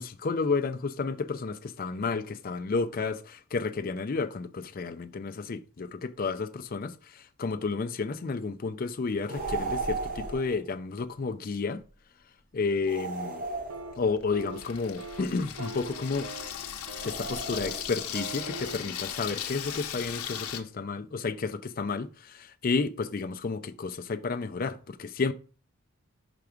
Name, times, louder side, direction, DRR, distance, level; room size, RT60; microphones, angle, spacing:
voice 1, 0.0-11.8 12.5-13.4 14.0-16.3 17.0-25.3, left 4 dB, 40° left, 0.4 m, -31 dB
sound 1, 9.3-10.6 12.9-14.3 17.0-18.1, right 3 dB, 40° right, 0.7 m, -35 dB
Water tap faucet / Sink (filling or washing), 13.5-20.6, left 9 dB, 85° left, 0.7 m, -38 dB
sound 2, 13.7-14.0 14.3-14.7 15.0-15.3 15.6-16.5 16.9-17.2 17.5-17.8 18.1-18.8, right 3 dB, 75° right, 0.8 m, -41 dB
5.9 x 3.4 x 5.0 m
head